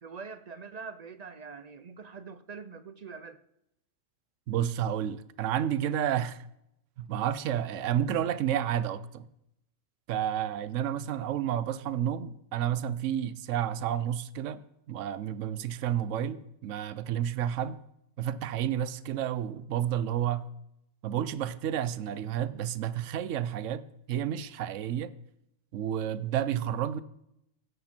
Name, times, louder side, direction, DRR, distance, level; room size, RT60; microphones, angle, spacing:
voice 1, 0.0-3.4, right 5 dB, 55° right, 0.4 m, -44 dB
voice 2, 4.5-6.4 7.0-9.3 10.1-14.6 14.9-17.8 18.2-20.5 21.0-23.8 24.1-25.1 25.7-27.0, right 10 dB, 75° right, 1.0 m, -30 dB
16.0 x 12.0 x 4.4 m
omnidirectional pair, 1.4 m